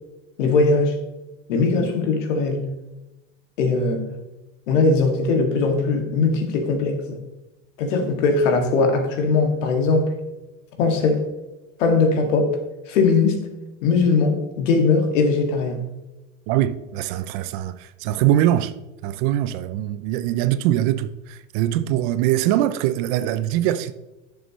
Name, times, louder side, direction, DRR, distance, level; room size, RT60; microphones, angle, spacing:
voice 1, 0.4-1.0 1.5-2.6 3.6-4.1 4.7-7.2 7.8-10.2 10.8-11.2 11.8-12.6 12.9-13.4 13.8-15.8, left 4 dB, 75° left, 2.1 m, -20 dB
voice 2, 16.5-18.7 19.0-23.9, right 12 dB, 40° right, 0.5 m, -22 dB
10.5 x 6.9 x 3.1 m
supercardioid pair, 140°, 38 cm